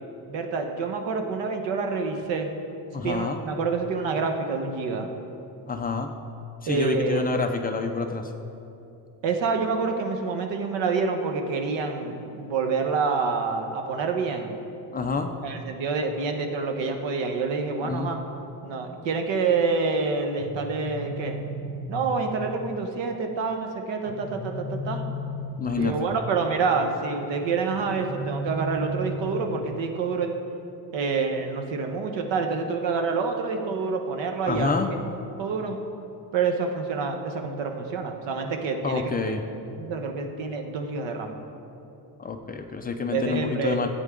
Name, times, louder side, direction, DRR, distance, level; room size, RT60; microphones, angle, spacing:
voice 1, 0.3-2.5 3.0-5.1 6.7-7.4 9.2-14.6 15.4-18.2 18.6-21.4 21.9-25.0 25.8-30.3 30.9-34.7 35.4-35.8 36.3-39.4 39.8-41.4 43.1-43.8, right 4 dB, 80° right, 4 dB, 1.2 m, -27 dB
voice 2, 2.9-3.4 5.7-6.1 6.6-8.3 14.9-15.3 17.7-18.1 25.6-26.1 34.5-34.9 38.8-39.4 42.2-43.9, left 4 dB, 25° left, 5 dB, 0.3 m, -28 dB
sound 1, 20.4-22.4 24.0-26.1 27.7-29.8, equal, 35° right, 1.0 m, -34 dB
14.0 x 8.4 x 3.7 m, 2.8 s
cardioid pair, 175°, 43 cm